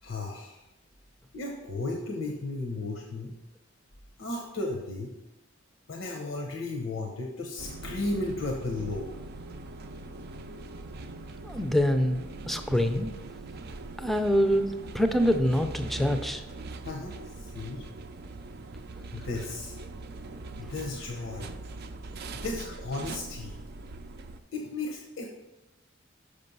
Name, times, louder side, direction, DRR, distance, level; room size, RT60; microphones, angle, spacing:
voice 1, 0.0-0.7 1.3-3.3 4.2-5.1 5.9-9.1 16.8-17.9 19.1-19.8 20.6-21.5 22.3-23.6 24.5-25.3, left 2 dB, 75° left, 2 dB, 0.8 m, -34 dB
sound 1, 7.6-24.4, right 2 dB, 55° right, 0.5 m, -41 dB
voice 2, 11.4-12.2 12.5-13.1 14.0-14.7 14.9-16.4, equal, ahead, 7 dB, 0.5 m, -25 dB
6.7 x 5.2 x 5.4 m, 1.0 s
head